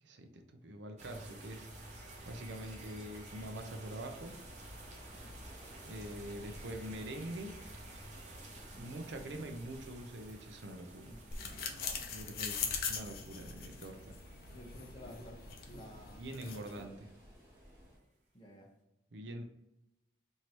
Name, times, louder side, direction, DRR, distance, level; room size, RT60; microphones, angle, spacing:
voice 1, 0.0-1.7 2.3-4.4 5.8-7.6 8.7-11.2 12.1-14.2 16.2-17.0 19.1-19.4, right 1 dB, 80° right, 6 dB, 0.6 m, -45 dB
sound 1, 1.0-16.8, right 1 dB, 40° right, 0.8 m, -52 dB
sound 2, 2.1-18.0, equal, 15° right, 1.1 m, -57 dB
voice 2, 8.8-9.5 11.0-12.4 14.5-15.4 15.7-16.2 16.7-16.9 18.3-18.7, equal, 25° left, -1 dB, 0.8 m, -54 dB
sound 3, 11.3-16.8, left 6 dB, 55° left, 0.6 m, -41 dB
4.6 x 2.7 x 2.9 m, 0.92 s
head